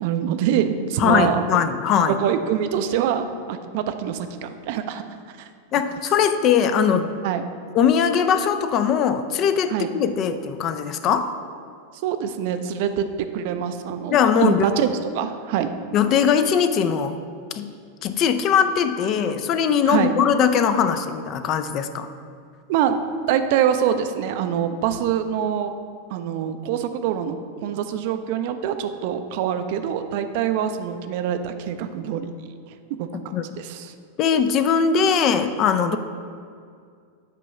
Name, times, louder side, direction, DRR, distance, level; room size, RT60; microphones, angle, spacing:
voice 1, 0.0-1.4 2.1-5.0 7.2-7.4 9.7-9.9 12.0-14.9 15.1-15.7 19.9-20.2 22.7-23.0 23.3-25.7 26.1-32.3 33.0-33.1 33.6-33.9, right 9 dB, 50° right, 8 dB, 0.4 m, -24 dB
voice 2, 1.0-2.2 5.7-7.1 7.7-11.3 14.1-14.7 15.9-17.2 17.5-17.7 18.0-22.1 33.3-33.4 34.2-36.0, left 7 dB, 35° left, 10 dB, 0.4 m, -20 dB
8.2 x 3.0 x 5.8 m, 2.2 s
figure-of-eight pair, 90°, 0 cm